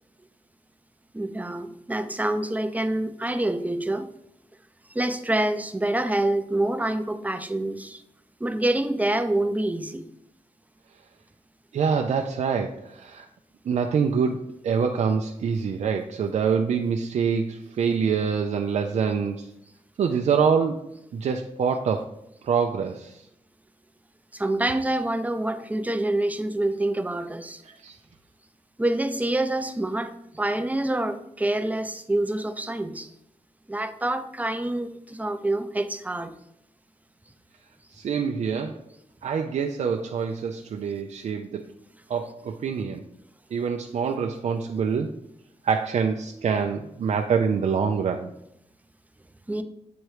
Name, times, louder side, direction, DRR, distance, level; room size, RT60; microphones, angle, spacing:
voice 1, 1.1-4.1 4.9-8.0 8.4-10.0 24.3-27.6 28.8-33.1 33.7-36.3 49.5-49.6, right 1 dB, 15° right, 8 dB, 0.6 m, -26 dB
voice 2, 11.7-13.3 13.6-19.5 20.0-22.1 22.4-23.3 27.6-28.0 37.9-38.8 39.2-41.7 42.1-43.0 43.5-45.1 45.6-48.3, right 6 dB, 75° right, 3 dB, 0.5 m, -25 dB
7.9 x 3.1 x 4.8 m, 0.79 s
cardioid pair, 70°, 12 cm